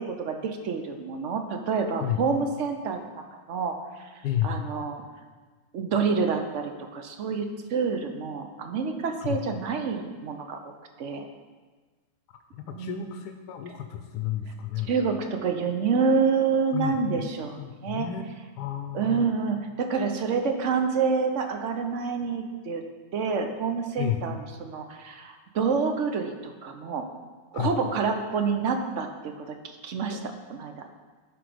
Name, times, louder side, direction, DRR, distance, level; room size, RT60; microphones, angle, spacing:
voice 1, 0.0-3.0 3.3-4.1 4.4-5.0 5.7-11.3 12.7-13.1 14.9-17.6 17.8-18.1 18.9-22.8 23.1-27.0 27.5-30.2 30.5-30.7, right 5 dB, 60° right, 5 dB, 0.9 m, -28 dB
voice 2, 4.2-4.6 9.2-9.4 12.5-14.9 16.7-17.3 17.6-18.2 18.6-19.3 24.0-24.2 27.5-27.7 30.1-30.2, left 11 dB, 90° left, 6 dB, 1.2 m, -31 dB
11.0 x 4.0 x 5.0 m, 1.4 s
omnidirectional pair, 1.7 m